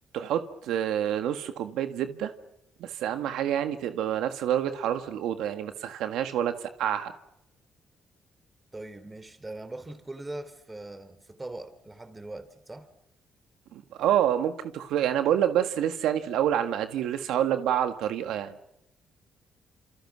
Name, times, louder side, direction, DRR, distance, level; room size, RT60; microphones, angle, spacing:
voice 1, 0.1-2.3 2.8-7.1 13.7-18.5, right 10 dB, 90° right, 1.7 m, -27 dB
voice 2, 8.7-12.9, right 2 dB, 20° right, 3.7 m, -41 dB
28.0 x 27.5 x 6.2 m
cardioid pair, 90°, 0 cm